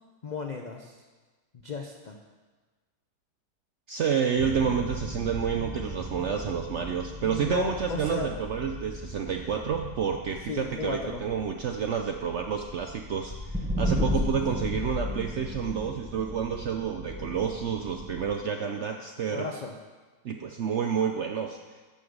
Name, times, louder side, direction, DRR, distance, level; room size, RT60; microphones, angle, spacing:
voice 1, 0.2-0.9 1.6-2.2 7.2-8.3 10.5-11.2 19.3-19.7, left 3 dB, 65° left, 3 dB, 0.4 m, -34 dB
voice 2, 3.9-19.5 20.2-21.6, right 7 dB, 70° right, 4 dB, 0.6 m, -29 dB
sound 1, 4.4-18.4, left 1 dB, 5° right, 0.5 m, -36 dB
10.5 x 5.8 x 6.4 m, 1.3 s
omnidirectional pair, 1.8 m